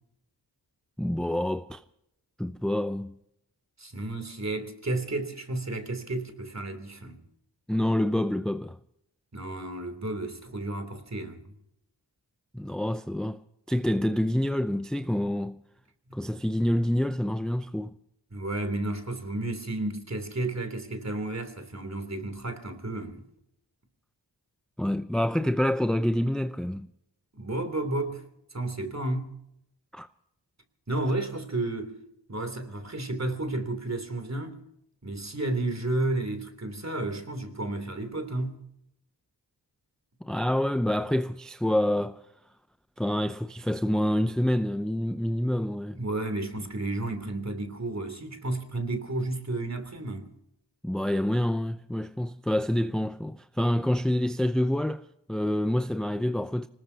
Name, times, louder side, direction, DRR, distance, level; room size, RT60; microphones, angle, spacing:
voice 1, 1.0-1.8 2.4-3.1 7.7-8.8 12.5-13.4 13.7-15.6 16.1-18.0 24.8-26.9 29.9-30.1 40.2-42.2 43.0-46.0 50.8-56.7, left 1 dB, ahead, 0.6 m, -27 dB
voice 2, 3.8-7.2 9.3-11.5 16.1-16.2 18.3-23.3 27.3-28.2 28.5-29.3 30.9-32.0 32.3-34.6 35.0-38.6 45.9-50.3, right 2 dB, 35° right, 3.1 m, -32 dB
26.0 x 19.5 x 2.8 m
cardioid pair, 50°, 44 cm